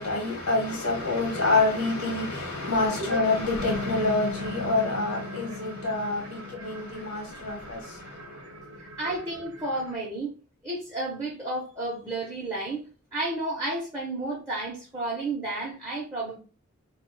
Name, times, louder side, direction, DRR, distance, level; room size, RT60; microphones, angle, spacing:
voice 1, 0.0-7.8, left 2 dB, 75° left, 0.9 m, -27 dB
sound 1, 3.6-10.0, left 1 dB, 75° right, 0.6 m, -39 dB
voice 2, 8.8-10.3 10.6-12.8 13.1-16.4, right 2 dB, 15° right, 0.5 m, -32 dB
2.4 x 2.1 x 2.5 m
head